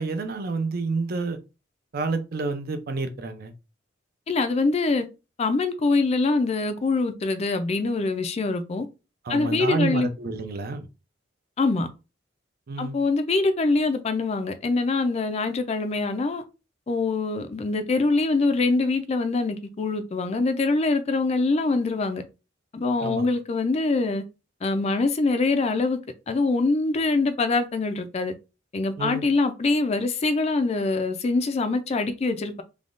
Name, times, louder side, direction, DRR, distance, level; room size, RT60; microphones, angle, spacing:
voice 1, 0.0-1.4 1.9-3.5 9.2-10.9 12.7-13.0 23.0-23.2 29.0-29.2, right 3 dB, 50° right, 0.5 m, -29 dB
voice 2, 4.3-5.0 5.4-8.9 9.3-10.1 11.6-11.9 12.8-16.4 16.9-22.2 22.7-24.2 24.6-26.0 26.3-28.3 28.7-32.6, left 3 dB, 35° left, 0.3 m, -24 dB
3.4 x 2.2 x 2.4 m
head